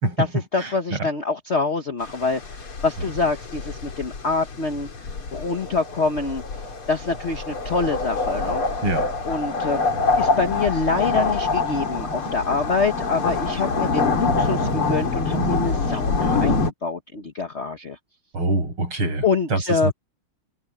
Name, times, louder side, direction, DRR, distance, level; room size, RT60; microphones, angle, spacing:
voice 1, 0.0-1.1 3.0-3.1 8.8-9.1 18.3-19.9, right 2 dB, 85° right, 7.3 m, -25 dB
voice 2, 0.5-2.4 2.8-4.9 5.3-6.4 6.9-8.6 9.2-9.8 10.2-18.0 19.2-19.9, left 4 dB, 35° left, 1.3 m, -25 dB
sound 1, 2.0-16.7, left 3 dB, 90° left, 3.8 m, -25 dB
omnidirectional pair, 2.3 m